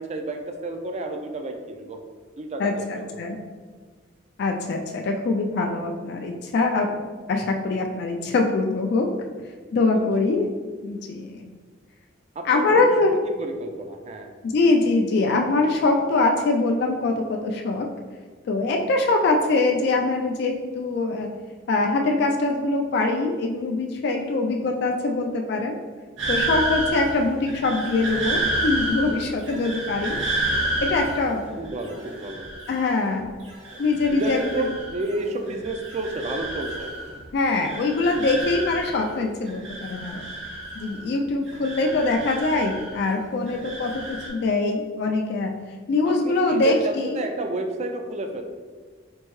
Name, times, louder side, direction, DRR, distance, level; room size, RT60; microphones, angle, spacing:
voice 1, 0.0-2.0 2.4-3.2 9.9-10.5 12.4-12.9 13.4-14.3 31.6-32.5 34.1-36.9 46.0-48.4, right 2 dB, 35° right, 4 dB, 0.3 m, -31 dB
voice 2, 2.6-3.4 4.4-6.9 7.3-9.1 9.7-10.5 10.8-11.5 12.4-13.1 14.4-17.9 18.5-21.3 21.7-25.8 26.3-30.2 30.8-31.6 32.7-33.3 33.8-34.4 37.3-40.3 40.7-45.5 45.9-47.2, left 3 dB, 55° left, 2 dB, 0.3 m, -23 dB
sound 1, 26.2-33.2 33.5-35.2 35.5-37.2 37.5-39.2 39.5-41.1 41.5-43.1 43.5-44.3, right 1 dB, 75° right, 1.1 m, -30 dB
4.5 x 2.6 x 3.0 m, 1.5 s
head